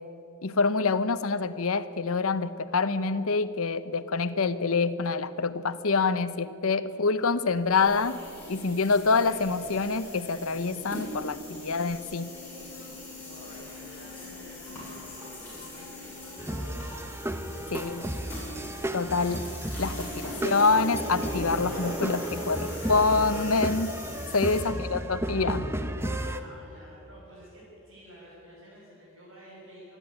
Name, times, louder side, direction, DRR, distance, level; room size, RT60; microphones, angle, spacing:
voice 1, 0.4-8.2 8.5-12.3 17.7-18.0 18.9-19.4 19.8-23.9 24.3-25.7, left 4 dB, 75° left, 12 dB, 0.8 m, -26 dB
sound 1, 7.7-24.6, left 1 dB, 10° left, 7.0 m, -40 dB
voice 2, 13.2-19.5 20.1-20.4 24.5-25.3 26.3-30.0, equal, 55° right, -8 dB, 6.8 m, -51 dB
sound 2, 16.4-26.4, right 1 dB, 10° right, 0.8 m, -34 dB
26.0 x 11.0 x 9.8 m, 2.9 s
head